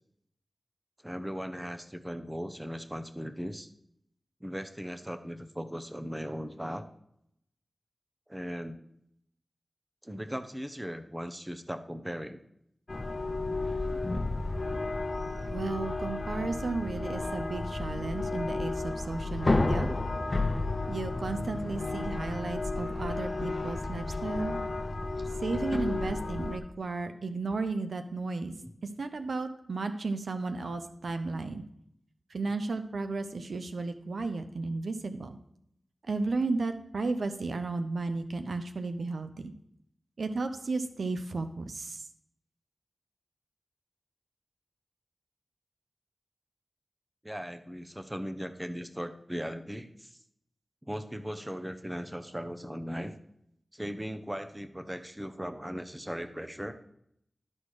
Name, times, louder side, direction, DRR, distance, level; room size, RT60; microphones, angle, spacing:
voice 1, 1.0-3.7 4.4-6.8 8.3-8.8 10.0-12.4 25.2-25.3 28.6-28.7 47.2-50.2 50.8-53.2 53.7-56.8, equal, 10° right, 10 dB, 0.7 m, -38 dB
sound 1, 12.9-26.6, left 2 dB, 45° left, 0.8 m, -32 dB
voice 2, 15.5-19.9 20.9-24.6 25.4-28.5 29.0-31.6 32.3-35.4 36.1-39.5 40.2-42.1, right 3 dB, 80° right, 9 dB, 0.6 m, -34 dB
sound 2, 17.5-22.6, left 1 dB, 10° left, 1.2 m, -49 dB
11.5 x 4.3 x 4.8 m, 0.75 s
cardioid pair, 50°, 0 cm